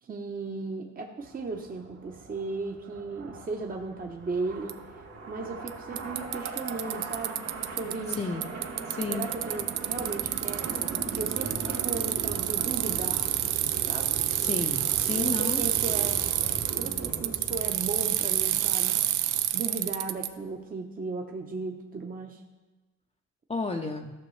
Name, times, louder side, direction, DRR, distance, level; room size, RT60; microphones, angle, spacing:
voice 1, 0.0-7.4 7.7-8.3 9.1-10.8 11.1-13.3 13.9-14.1 15.1-19.0 19.5-22.4, right 3 dB, 30° right, 2 dB, 0.8 m, -36 dB
sound 1, 1.2-18.7, right 3 dB, 60° right, 2.3 m, -40 dB
Bicycle, 4.7-4.8 5.7-5.8 6.0-8.2 8.4-20.3, right 13 dB, 85° right, 0.5 m, -28 dB
voice 2, 8.9-9.3 14.4-15.6 23.5-24.1, left 3 dB, 20° left, 2 dB, 0.6 m, -32 dB
14.0 x 6.0 x 3.2 m, 1.2 s
cardioid pair, 90°, 30 cm